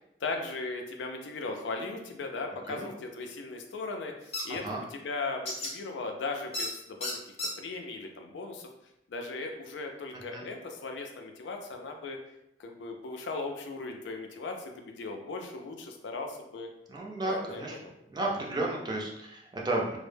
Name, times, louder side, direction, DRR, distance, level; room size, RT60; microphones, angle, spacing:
voice 1, 0.2-4.1 4.4-7.2 7.6-8.7 9.1-12.2 12.6-16.7 17.2-17.9, left 3 dB, 85° left, 3 dB, 0.4 m, -37 dB
sound 1, 4.3-4.4 5.5-5.7 6.5-6.7 7.0-7.5, left 1 dB, 35° left, 0.6 m, -32 dB
voice 2, 16.9-17.7 18.1-20.0, right 2 dB, 25° right, -2 dB, 0.4 m, -33 dB
2.1 x 2.0 x 3.1 m, 0.82 s
head